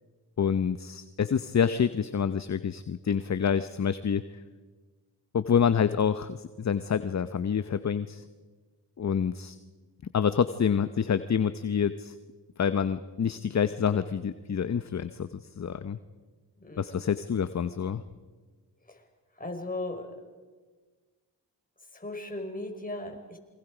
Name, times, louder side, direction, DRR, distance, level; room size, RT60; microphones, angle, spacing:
voice 1, 0.4-4.2 5.3-8.2 9.0-9.6 10.1-12.1 12.6-16.0 16.8-18.0, left 7 dB, 40° left, 12 dB, 0.8 m, -27 dB
voice 2, 16.6-17.0 18.9-19.0 19.3-20.2 21.9-23.4, left 2 dB, 20° left, 3 dB, 4.7 m, -37 dB
28.0 x 23.0 x 5.0 m, 1.4 s
cardioid pair, 55°, 42 cm